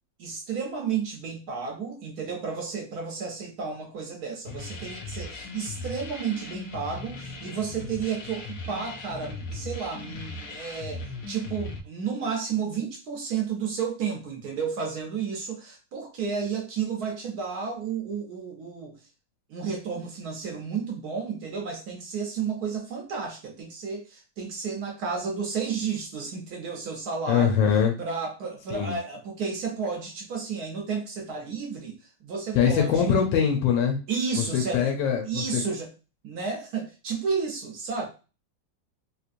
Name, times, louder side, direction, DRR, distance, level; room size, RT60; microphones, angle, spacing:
voice 1, 0.2-18.9 19.5-27.6 28.0-32.0 32.2-33.2 34.1-34.9 35.2-35.9 36.2-38.1, right 6 dB, 65° right, 2 dB, 1.0 m, -32 dB
sound 1, 4.4-11.8, left 3 dB, 65° left, 0.9 m, -38 dB
voice 2, 27.3-27.9 28.7-28.9 32.5-34.0 34.4-35.6, left 7 dB, 90° left, 2 dB, 1.4 m, -23 dB
3.2 x 3.0 x 2.5 m, 0.32 s
omnidirectional pair, 2.0 m